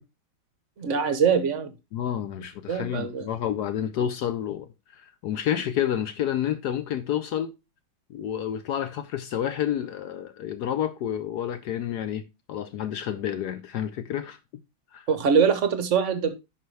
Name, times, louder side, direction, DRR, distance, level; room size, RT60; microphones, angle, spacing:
voice 1, 0.8-1.7 2.7-3.3 15.1-16.3, right 6 dB, 50° right, 0.9 m, -23 dB
voice 2, 1.9-7.5 8.1-12.2 12.5-14.4 14.9-15.1, left 10 dB, 75° left, 0.9 m, -29 dB
9.9 x 5.6 x 3.2 m
omnidirectional pair, 2.3 m